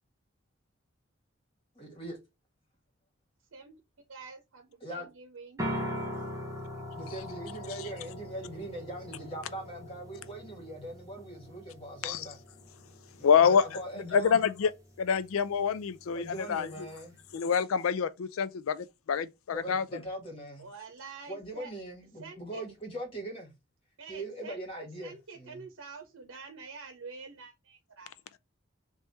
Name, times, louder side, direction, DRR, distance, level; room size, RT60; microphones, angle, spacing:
voice 1, 1.8-2.2 4.8-5.1 6.9-12.4 13.2-14.4 16.1-17.2 19.5-20.6 21.3-23.5 24.1-25.6, right 1 dB, 25° left, 1.9 m, -41 dB
voice 2, 4.1-5.6 20.6-21.7 22.2-22.6 24.0-28.4, right 4 dB, 85° right, 0.8 m, -47 dB
sound 1, 5.6-17.3, equal, 15° right, 0.7 m, -42 dB
voice 3, 13.2-13.6 14.1-14.7 15.0-16.9 17.3-19.8, left 7 dB, 85° left, 0.4 m, -26 dB
3.4 x 2.9 x 4.1 m
head